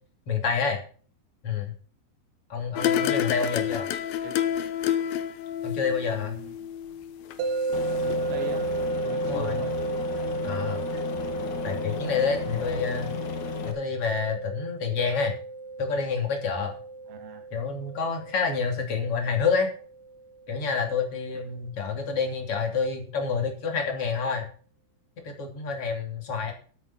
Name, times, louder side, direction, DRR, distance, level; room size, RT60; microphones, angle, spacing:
voice 1, 0.3-0.8 1.4-1.7 2.5-3.9 5.6-6.4 9.2-9.6 10.4-10.8 11.6-13.1 13.6-15.4 15.8-16.8 17.5-19.7 20.5-24.5 25.2-26.5, left 5 dB, 35° left, 3 dB, 3.1 m, -28 dB
sound 1, 2.8-8.2, left 10 dB, 70° left, 2.4 m, -29 dB
voice 2, 3.9-4.4 6.1-6.7 8.0-8.7 9.0-9.7 17.1-17.5, right 3 dB, 40° right, 2 dB, 2.9 m, -41 dB
sound 2, 7.4-20.5, right 3 dB, 60° right, 2.5 m, -33 dB
Aircraft, 7.7-13.7, left 7 dB, 55° left, 2.5 m, -35 dB
13.5 x 9.1 x 4.1 m, 0.42 s
omnidirectional pair, 5.0 m